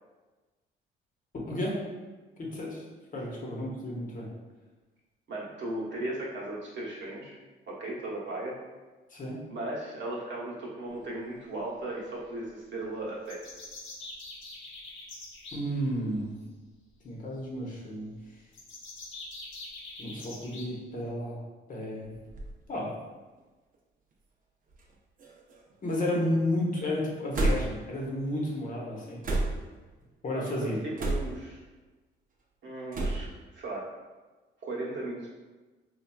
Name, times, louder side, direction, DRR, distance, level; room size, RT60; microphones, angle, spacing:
voice 1, 1.5-1.8 2.4-2.8 3.1-4.3 9.1-9.4 15.5-16.4 17.0-18.1 20.0-21.4 21.7-22.1 22.7-22.9 25.8-29.2 30.2-30.8, left 1 dB, 40° left, -3 dB, 0.9 m, -32 dB
voice 2, 5.3-7.3 7.7-8.6 9.5-13.4 30.3-31.6 32.6-33.3 33.5-33.9 34.6-35.3, right 2 dB, 65° right, -5 dB, 1.0 m, -36 dB
sound 1, 13.3-15.6 18.5-20.7, left 2 dB, 80° left, 0.8 m, -44 dB
sound 2, 22.0-22.5 23.4-23.5 24.7-24.9 25.2-25.8 27.3-27.9 29.2-29.8 31.0-31.5 32.9-33.4, right 2 dB, 45° right, 0.6 m, -30 dB
4.3 x 2.3 x 2.2 m, 1.2 s
cardioid pair, 90°, 20 cm